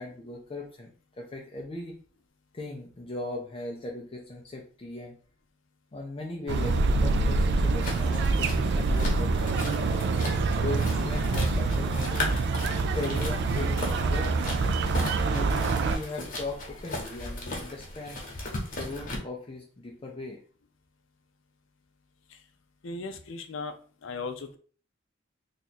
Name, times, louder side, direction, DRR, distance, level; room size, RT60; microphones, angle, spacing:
voice 1, 0.0-2.0 2.5-5.2 5.9-10.0 10.5-12.4 12.9-14.4 15.3-18.2 18.7-20.4, left 2 dB, 30° left, 0 dB, 0.5 m, -38 dB
sound 1, 6.5-16.0, right 3 dB, 60° right, 0.3 m, -26 dB
sound 2, 7.8-19.2, left 1 dB, 45° left, 1.0 m, -37 dB
voice 2, 22.8-23.7 24.0-24.6, left 4 dB, 75° left, 8 dB, 0.5 m, -37 dB
2.9 x 2.4 x 4.2 m, 0.42 s
head